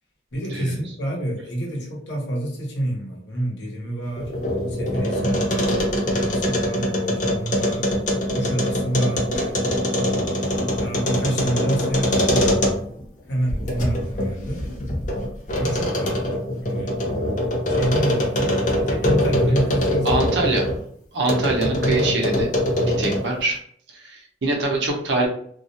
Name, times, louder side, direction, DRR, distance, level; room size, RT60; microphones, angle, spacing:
voice 1, 0.3-4.3 4.7-7.9 8.3-9.3 10.8-12.7 13.3-14.7 15.5-16.2 16.6-17.0 17.7-20.6 21.5-22.2, right 1 dB, 85° left, -2 dB, 0.8 m, -28 dB
sound 1, 4.1-13.0 13.5-20.8 21.3-23.4, left 1 dB, 45° left, 0.5 m, -23 dB
voice 2, 20.0-20.7 21.1-22.5 23.0-23.6 23.9-25.3, right 2 dB, 85° right, 0 dB, 0.7 m, -24 dB
2.3 x 2.0 x 2.7 m, 0.62 s
head